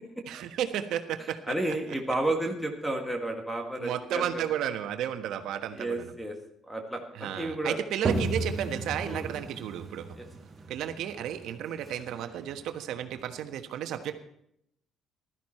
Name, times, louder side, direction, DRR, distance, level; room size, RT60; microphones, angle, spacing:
voice 1, 0.3-1.4 3.8-6.1 7.1-10.1 10.7-14.1, right 10 dB, 75° right, 7 dB, 1.3 m, -33 dB
voice 2, 1.5-4.4 5.7-6.4 6.6-7.8 9.0-9.3 10.2-10.3, right 1 dB, ahead, 4 dB, 1.7 m, -32 dB
sound 1, 8.1-13.5, right 3 dB, 25° right, 2.1 m, -35 dB
15.5 x 13.0 x 4.4 m, 0.74 s
cardioid pair, 145°, 0 cm